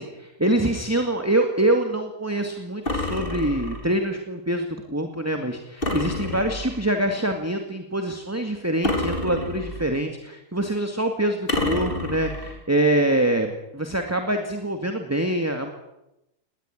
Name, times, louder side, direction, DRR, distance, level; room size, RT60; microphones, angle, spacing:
voice 1, 0.0-15.7, right 1 dB, 10° right, 5 dB, 2.2 m, -25 dB
sound 1, 2.9-3.9 5.8-6.9 8.8-10.0 11.5-12.6, left 2 dB, 40° left, 4.1 m, -28 dB
20.5 x 18.5 x 10.0 m, 0.88 s
omnidirectional pair, 1.4 m